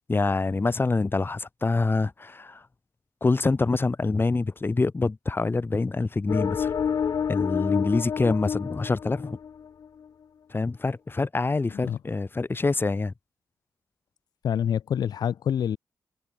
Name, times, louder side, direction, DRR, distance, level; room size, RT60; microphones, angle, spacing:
voice 1, 0.0-2.6 3.2-6.7 7.3-9.4 10.5-13.1, left 3 dB, 35° left, 2.7 m, -26 dB
sound 1, 6.3-9.9, left 7 dB, 65° left, 1.0 m, -28 dB
voice 2, 11.7-12.0 14.4-15.8, left 9 dB, 85° left, 3.5 m, -27 dB
cardioid pair, 65°, 7 cm